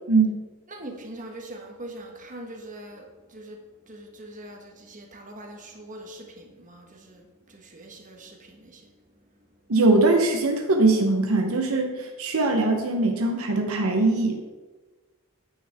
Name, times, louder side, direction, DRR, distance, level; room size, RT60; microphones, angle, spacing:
voice 1, 0.7-9.6, right 1 dB, 35° right, 2 dB, 1.4 m, -43 dB
voice 2, 9.7-14.5, right 2 dB, 70° right, 3 dB, 0.9 m, -21 dB
9.3 x 9.2 x 3.5 m, 1.3 s
head